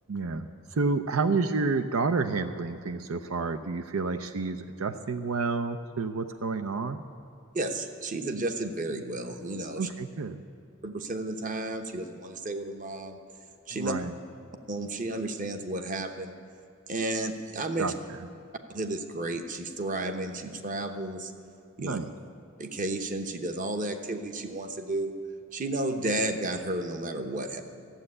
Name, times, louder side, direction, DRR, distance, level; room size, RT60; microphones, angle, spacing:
voice 1, 0.1-7.0 9.8-10.4 13.7-14.1 17.8-18.3 21.8-22.1, right 4 dB, 80° right, 9 dB, 0.6 m, -30 dB
voice 2, 7.5-9.9 10.8-13.2 13.7-13.9 14.7-16.3 16.9-17.9 18.7-21.3 21.8-22.0 22.6-25.1 25.5-27.6, right 2 dB, 40° right, 6 dB, 1.0 m, -32 dB
14.5 x 7.8 x 9.7 m, 2.7 s
head